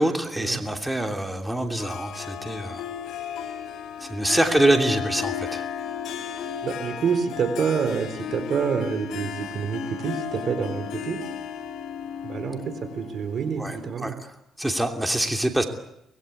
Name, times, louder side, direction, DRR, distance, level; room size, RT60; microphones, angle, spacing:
voice 1, 0.0-2.8 4.0-5.6 13.6-14.1 14.6-15.6, right 1 dB, 5° right, 3 dB, 2.9 m, -25 dB
Harp, 1.8-14.0, left 8 dB, 80° left, 4.2 m, -34 dB
voice 2, 6.6-11.2 12.2-14.2, right 6 dB, 60° right, 10 dB, 3.8 m, -27 dB
24.5 x 20.5 x 8.3 m, 0.80 s
cardioid pair, 90°, 0 cm